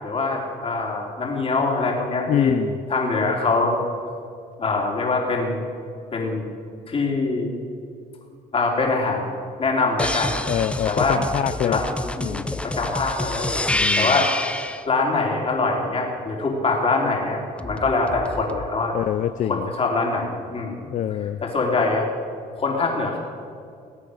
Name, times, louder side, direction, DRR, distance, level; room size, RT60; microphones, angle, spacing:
voice 1, 0.0-2.5 2.9-3.8 4.6-5.6 6.1-6.5 6.9-7.5 8.5-9.3 9.6-10.5 10.9-11.2 11.6-11.9 12.6-13.6 14.0-14.3 14.9-18.9 19.5-20.9 21.4-22.1 22.6-23.2, left 3 dB, 35° left, -1 dB, 3.6 m, -23 dB
voice 2, 2.3-2.8 10.5-11.8 12.2-12.6 13.7-14.2 18.9-19.7 20.8-21.4, left 10 dB, 50° left, 12 dB, 0.5 m, -25 dB
sound 1, 10.0-14.8 17.6-18.7, left 1 dB, 5° left, 0.7 m, -27 dB
20.5 x 8.3 x 6.6 m, 2.4 s
cardioid pair, 110°, 17 cm